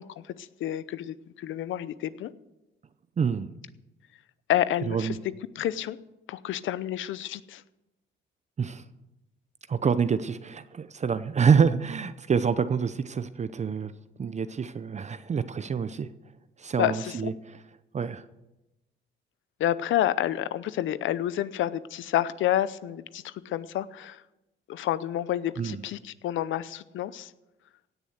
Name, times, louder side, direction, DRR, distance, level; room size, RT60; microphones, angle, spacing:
voice 1, 0.0-2.3 4.5-5.2 5.5-6.0 6.3-7.6 16.8-17.3 19.6-24.2 24.7-27.3, left 12 dB, 75° left, 16 dB, 0.7 m, -29 dB
voice 2, 3.2-3.5 4.9-5.2 8.6-8.8 9.7-13.9 14.2-16.1 16.6-17.6 17.9-18.2 25.6-25.8, right 6 dB, 35° right, 12 dB, 0.7 m, -26 dB
17.0 x 7.0 x 8.1 m, 0.97 s
cardioid pair, 90°, 20 cm